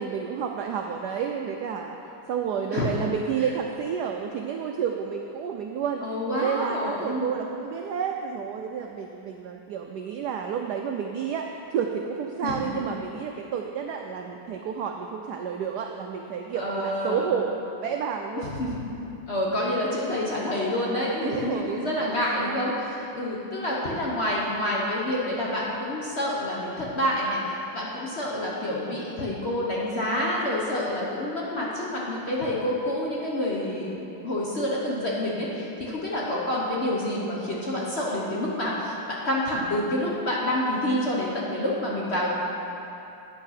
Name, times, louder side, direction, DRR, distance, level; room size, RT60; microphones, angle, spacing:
voice 1, 0.0-1.9 2.3-6.0 6.3-18.6 21.2-22.6, right 7 dB, 90° right, 3 dB, 0.8 m, -30 dB
voice 2, 2.7-3.1 6.0-7.3 12.4-12.7 16.6-17.3 18.4-18.9 19.3-42.3, left 1 dB, 45° left, -5 dB, 0.9 m, -28 dB
9.2 x 6.3 x 5.7 m, 2.9 s
omnidirectional pair, 2.3 m